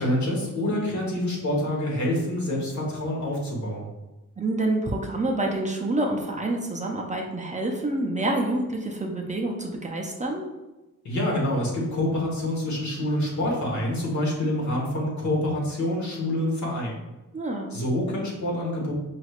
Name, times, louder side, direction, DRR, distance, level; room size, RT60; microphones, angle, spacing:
voice 1, 0.0-3.9 11.0-17.0 17.7-18.9, left 1 dB, 55° left, -3 dB, 1.3 m, -26 dB
voice 2, 4.4-10.4 17.3-17.7, right 2 dB, 20° right, 0 dB, 0.4 m, -27 dB
5.1 x 3.2 x 2.4 m, 1.0 s
wide cardioid pair, 175°, 34 cm